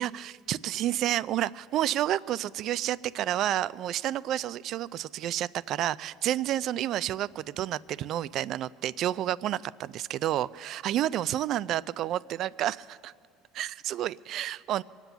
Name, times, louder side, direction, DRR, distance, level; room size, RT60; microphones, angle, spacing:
voice 1, 0.0-13.1 13.5-14.8, right 12 dB, 55° right, 20 dB, 0.3 m, -30 dB
24.0 x 8.2 x 6.7 m, 2.2 s
cardioid pair, 125°, 0 cm